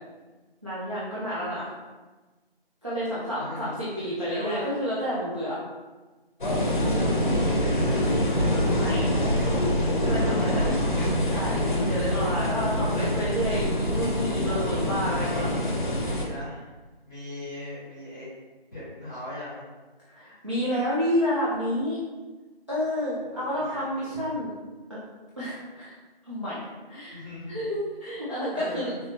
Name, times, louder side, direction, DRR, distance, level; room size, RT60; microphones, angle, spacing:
voice 1, 0.6-1.7 2.8-5.6 8.7-9.0 10.0-10.7 11.3-15.5 20.1-22.0 22.7-24.5 24.9-25.0 25.4-25.9 26.3-26.6 26.9-27.2 27.5-28.9, equal, 30° right, -10 dB, 0.5 m, -30 dB
voice 2, 3.4-3.8 4.2-4.7 7.6-10.5 14.9-15.5 16.1-16.7 17.1-18.2 18.7-19.7 23.2-24.2 27.1-27.6 28.5-29.0, left 1 dB, ahead, -20 dB, 1.2 m, -40 dB
sound 1, 6.4-16.3, left 1 dB, 50° left, 0.7 m, -25 dB
3.7 x 2.9 x 2.7 m, 1.2 s
figure-of-eight pair, 175°, 30 cm